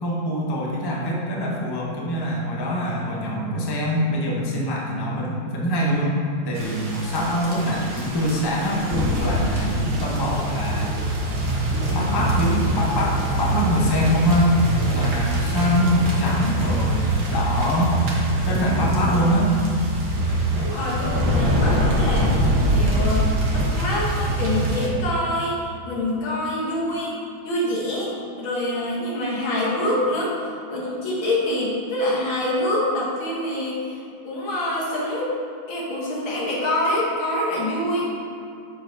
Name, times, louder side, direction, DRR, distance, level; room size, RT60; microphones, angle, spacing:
voice 1, 0.0-6.2 6.4-8.9 9.2-11.0 11.9-14.6 14.9-17.9 18.4-19.5, equal, 25° left, -3 dB, 0.6 m, -24 dB
sound 1, 6.5-24.9, right 1 dB, 60° right, 1.7 m, -23 dB
sound 2, 11.8-16.7, right 1 dB, 25° right, 0.7 m, -40 dB
voice 2, 20.6-27.1 27.4-28.1 28.4-30.4 30.7-35.4 35.7-38.1, left 1 dB, 85° left, -5 dB, 2.3 m, -25 dB
7.1 x 4.8 x 4.6 m, 2.5 s
omnidirectional pair, 2.1 m